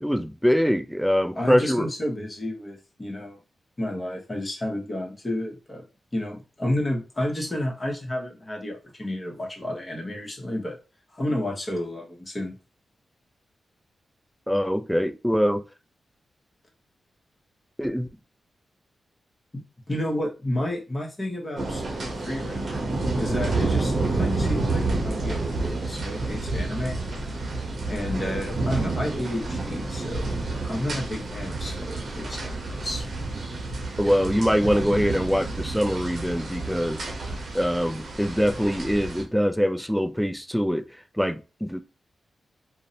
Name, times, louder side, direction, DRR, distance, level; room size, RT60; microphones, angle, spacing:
voice 1, 0.0-1.9 14.5-15.6 17.8-18.1 34.0-37.0 37.5-40.8 41.2-41.8, equal, ahead, 0.3 m, -23 dB
voice 2, 1.4-3.4 3.8-5.8 6.1-10.8 11.1-12.5 19.5-19.6 19.9-21.8 22.3-22.7 23.2-27.0 27.9-30.3 30.7-33.1, left 1 dB, 30° left, 1.0 m, -31 dB
sound 1, 21.6-39.2, right 2 dB, 60° right, 0.8 m, -29 dB
2.5 x 2.1 x 2.7 m
cardioid pair, 55°, 0 cm